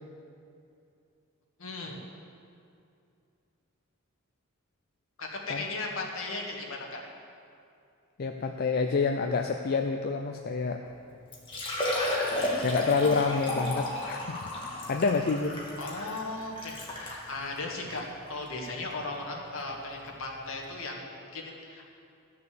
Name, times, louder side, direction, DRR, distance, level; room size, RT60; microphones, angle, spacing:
voice 1, 1.6-2.0 5.2-7.0 15.8-21.0 21.3-21.8, left 2 dB, 70° left, -1 dB, 1.8 m, -37 dB
voice 2, 8.2-10.8 12.6-14.4 14.9-15.6, left 4 dB, 45° left, 5 dB, 0.4 m, -28 dB
Liquid, 10.9-11.0 11.3-17.2 17.9-18.0 18.5-18.6 20.2-20.3 20.5-20.6, left 1 dB, 25° left, 1.9 m, -33 dB
13.5 x 6.8 x 6.9 m, 2.5 s
head